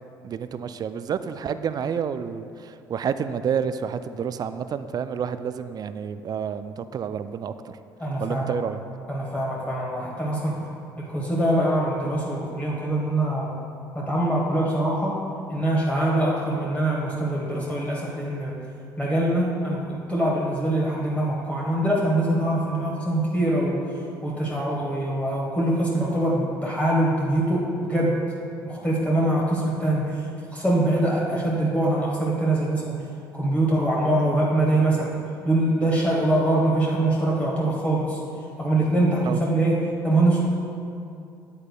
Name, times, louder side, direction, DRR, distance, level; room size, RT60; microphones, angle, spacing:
voice 1, 0.2-7.5 8.2-8.8 39.3-39.4, right 7 dB, 40° right, 12 dB, 0.4 m, -29 dB
voice 2, 8.0-8.6 9.1-10.6 11.0-13.5 13.9-15.2 15.5-18.5 19.0-23.8 24.2-28.2 28.6-33.0 33.3-35.1 35.4-38.2 38.6-40.4, right 1 dB, 15° left, -4 dB, 1.3 m, -23 dB
8.5 x 8.1 x 2.3 m, 2.5 s
hypercardioid pair, 55°, 11 cm